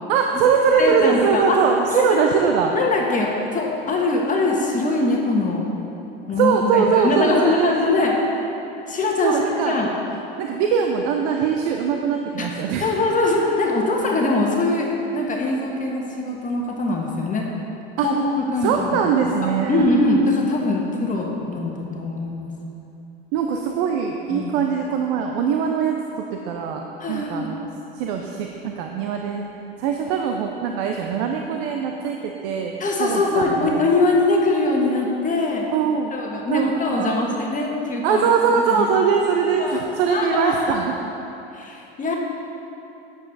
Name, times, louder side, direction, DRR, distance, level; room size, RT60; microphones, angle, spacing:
voice 1, 0.1-2.7 6.4-7.7 9.2-9.8 10.4-12.9 18.0-18.1 18.6-19.8 23.3-27.6 27.9-29.4 29.8-32.7 33.0-33.8 35.7-36.1 36.5-36.7 36.9-37.3 38.0-40.9, right 6 dB, 60° right, 3 dB, 0.8 m, -21 dB
voice 2, 0.8-1.6 1.9-2.0 2.7-5.7 6.3-8.2 8.9-9.4 9.7-9.9 12.4-17.5 18.0-19.1 19.7-22.5 24.3-24.5 27.0-27.5 32.8-35.7 36.1-38.3 38.8-38.9 39.6-39.8 40.1-40.8 41.5-42.1, left 2 dB, 25° left, -1 dB, 1.3 m, -22 dB
9.5 x 8.3 x 4.1 m, 2.9 s
hypercardioid pair, 85°, 30 cm